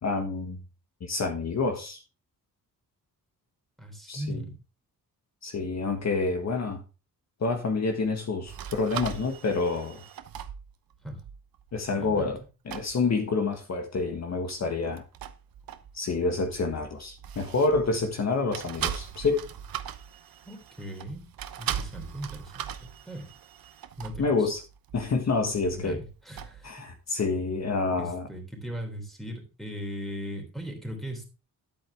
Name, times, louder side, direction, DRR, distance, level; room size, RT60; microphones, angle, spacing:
voice 1, 0.0-0.6 1.0-2.0 4.1-4.4 5.4-6.8 7.4-10.0 11.7-15.0 15.9-19.5 24.2-24.6 24.9-26.0 26.6-28.3, left 3 dB, 45° left, 1.6 m, -28 dB
voice 2, 3.8-4.6 11.0-11.2 11.9-12.3 20.4-21.2 21.6-23.3 24.0-24.5 25.7-26.7 28.0-31.3, equal, ahead, 3.4 m, -38 dB
sound 1, 8.5-12.4 12.7-13.0 14.9-18.2 18.5-26.8, right 9 dB, 70° right, 1.0 m, -40 dB
11.0 x 8.6 x 3.6 m
wide cardioid pair, 140°, 36 cm